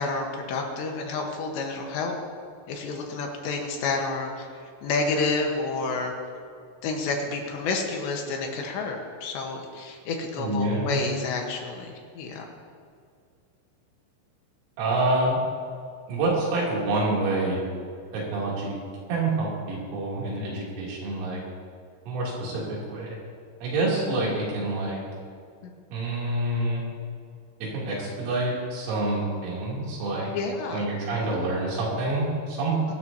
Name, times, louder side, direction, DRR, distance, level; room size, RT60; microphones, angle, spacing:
voice 1, 0.0-2.2 2.7-6.1 6.8-12.5 25.6-25.7 30.3-30.9, left 3 dB, 70° left, 1 dB, 3.2 m, -29 dB
voice 2, 10.4-11.1 14.8-15.4 16.1-17.6 18.1-18.8 19.1-21.4 22.1-23.2 23.6-25.0 25.9-26.8 27.6-30.3 30.7-32.8, right 2 dB, 85° right, -5 dB, 5.8 m, -27 dB
23.0 x 12.0 x 2.9 m, 2.2 s
omnidirectional pair, 5.8 m